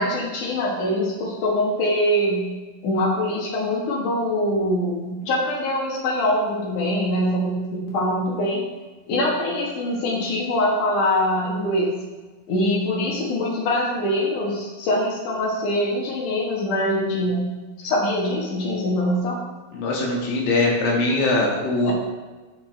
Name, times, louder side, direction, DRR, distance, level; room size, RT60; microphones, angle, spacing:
voice 1, 0.0-2.5 2.8-8.6 9.1-11.9 12.5-17.5 17.8-19.4 21.8-21.9, left 1 dB, 90° left, -3 dB, 1.7 m, -23 dB
voice 2, 19.7-21.9, left 2 dB, 75° left, -3 dB, 4.4 m, -21 dB
11.5 x 7.6 x 3.3 m, 1.3 s
omnidirectional pair, 6.0 m